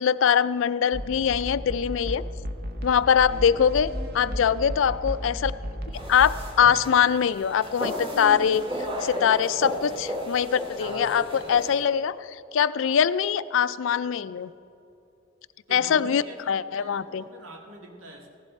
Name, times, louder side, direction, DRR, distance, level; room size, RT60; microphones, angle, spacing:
voice 1, 0.0-2.2 2.8-5.5 6.1-8.6 9.0-14.5 15.7-17.2, left 8 dB, 70° left, 16 dB, 0.3 m, -23 dB
sound 1, 0.9-6.5, equal, 45° right, 0.9 m, -34 dB
sound 2, 5.9-11.8, equal, 25° right, 1.9 m, -34 dB
voice 2, 15.7-18.3, right 1 dB, 80° right, 0 dB, 2.0 m, -45 dB
16.0 x 11.0 x 4.2 m, 2.8 s
head